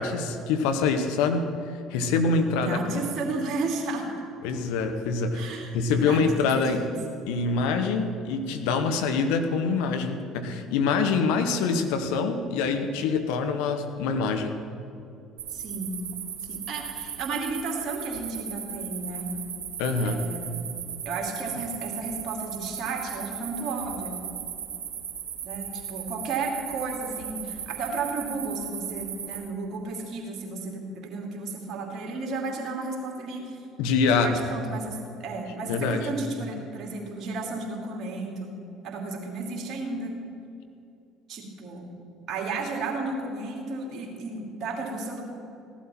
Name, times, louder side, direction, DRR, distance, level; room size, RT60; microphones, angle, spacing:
voice 1, 0.0-3.0 4.4-6.8 7.3-14.6 19.8-20.3 33.8-34.3 35.7-36.1, left 4 dB, 65° left, 7 dB, 1.0 m, -25 dB
voice 2, 2.6-4.2 5.3-6.9 15.5-16.0 16.4-19.3 20.0-20.5 21.0-24.2 25.4-33.6 34.1-38.6 38.8-40.1 41.3-41.9 42.3-45.2, right 3 dB, 50° right, 0 dB, 2.6 m, -33 dB
sound 1, 15.4-29.4, right 8 dB, 75° right, 1.9 m, -37 dB
16.5 x 11.5 x 4.4 m, 2.6 s
figure-of-eight pair, 60°, 0 cm